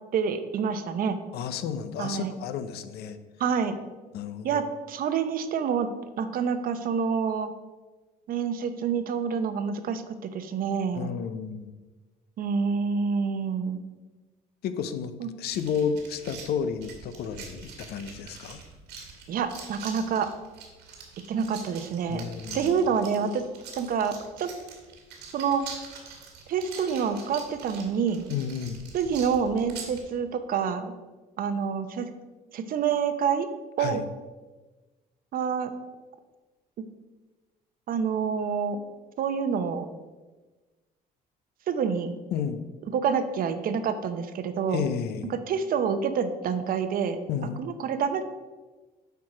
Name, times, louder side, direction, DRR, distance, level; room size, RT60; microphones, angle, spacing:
voice 1, 0.1-1.2 2.0-2.3 3.4-3.8 4.4-5.9 6.2-7.5 8.3-11.1 12.4-13.8 15.2-15.3 19.3-20.3 21.3-22.2 22.5-23.4 23.8-24.5 25.3-25.7 26.5-28.3 28.9-30.9 31.4-32.1 32.5-33.5 33.8-34.0 35.3-35.7 37.9-38.8 39.2-39.9 41.7-42.1 42.9-44.8 45.5-47.2 47.6-48.2, right 6 dB, 60° right, 10 dB, 0.7 m, -27 dB
voice 2, 1.3-3.2 4.1-4.6 10.9-11.7 14.6-15.1 15.4-18.6 22.1-22.9 28.3-28.8 33.8-34.0 42.3-42.6 44.7-45.3 47.3-47.6, left 7 dB, 70° left, 11 dB, 0.6 m, -32 dB
sound 1, 15.5-30.0, right 5 dB, 85° right, 1.9 m, -44 dB
8.2 x 4.7 x 4.8 m, 1.2 s
cardioid pair, 110°, 17 cm